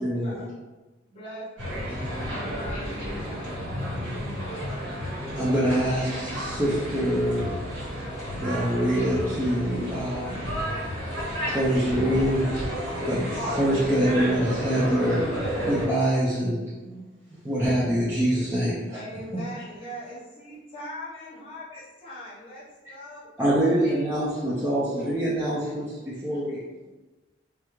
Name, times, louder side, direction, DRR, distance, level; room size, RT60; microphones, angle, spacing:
voice 1, 0.0-0.4 5.3-7.5 8.3-10.4 11.5-12.5 12.8-17.0 17.4-19.0 19.3-19.4 23.4-26.6, equal, 10° right, -9 dB, 0.3 m, -25 dB
voice 2, 1.1-3.4 18.9-22.6 22.9-23.2 23.6-23.7 24.1-24.5 25.0-25.2 25.6-25.8, equal, 30° left, -7 dB, 0.7 m, -41 dB
sound 1, 1.6-15.8, equal, 65° right, 1.4 m, -31 dB
voice 3, 2.3-4.6, right 1 dB, 80° right, -2 dB, 0.6 m, -43 dB
2.3 x 2.1 x 2.9 m, 1.2 s
head